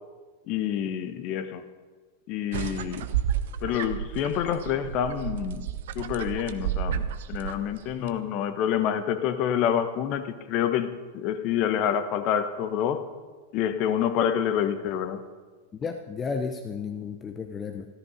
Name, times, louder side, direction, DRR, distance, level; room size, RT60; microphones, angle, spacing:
voice 1, 0.5-1.6 2.3-3.1 3.6-5.7 5.9-13.1 13.5-15.2, left 9 dB, 40° left, 10 dB, 1.0 m, -27 dB
sound 1, 2.5-8.1, right 9 dB, 55° right, 0.7 m, -31 dB
voice 2, 15.8-17.9, left 5 dB, 20° left, 6 dB, 0.7 m, -33 dB
14.0 x 13.0 x 5.2 m, 1.4 s
figure-of-eight pair, 90°, 0 cm